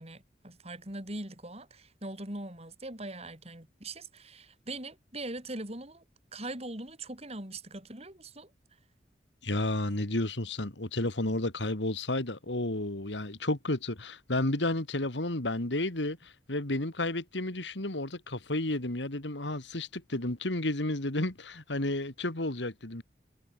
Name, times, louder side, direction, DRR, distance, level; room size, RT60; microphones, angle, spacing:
voice 1, 0.0-6.0 6.3-8.5, right 2 dB, 35° right, 6.0 m, -41 dB
voice 2, 9.4-23.0, left 1 dB, 85° left, 2.7 m, -32 dB
head